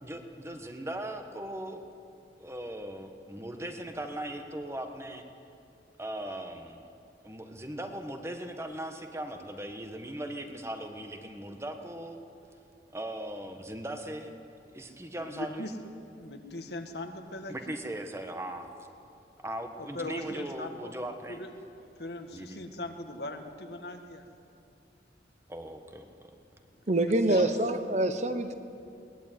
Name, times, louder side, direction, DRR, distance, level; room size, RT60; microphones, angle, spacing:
voice 1, 0.0-1.8 2.4-5.2 6.0-6.8 7.2-12.2 12.9-14.3 14.7-15.7 17.5-18.7 19.4-21.4 22.3-22.6 25.5-26.3 27.3-27.4, right 1 dB, 15° right, 5 dB, 1.4 m, -39 dB
voice 2, 15.2-15.7 16.2-17.8 19.8-20.9 21.3-21.5 21.7-24.2 27.3-27.6, left 2 dB, 65° left, 5 dB, 1.9 m, -40 dB
voice 3, 26.9-28.5, right 1 dB, 40° right, 9 dB, 1.0 m, -26 dB
21.5 x 18.5 x 9.3 m, 2.6 s
head